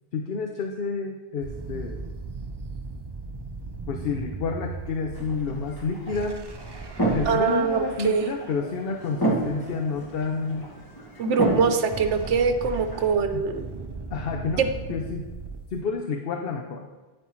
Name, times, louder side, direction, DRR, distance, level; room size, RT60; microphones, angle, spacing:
voice 1, 0.1-2.0 3.9-6.4 7.1-10.6 13.3-13.4 14.1-14.6 14.9-15.3 15.7-16.9, left 4 dB, 60° left, 4 dB, 0.9 m, -29 dB
sound 1, 1.4-8.6 11.4-15.8, right 4 dB, 40° right, 0.3 m, -38 dB
sound 2, 5.1-13.1, right 2 dB, 20° left, 1.6 m, -31 dB
voice 2, 7.3-8.3 11.2-13.7 14.6-14.7, right 5 dB, 80° right, 8 dB, 1.1 m, -23 dB
9.9 x 9.3 x 3.1 m, 1.2 s
omnidirectional pair, 1.2 m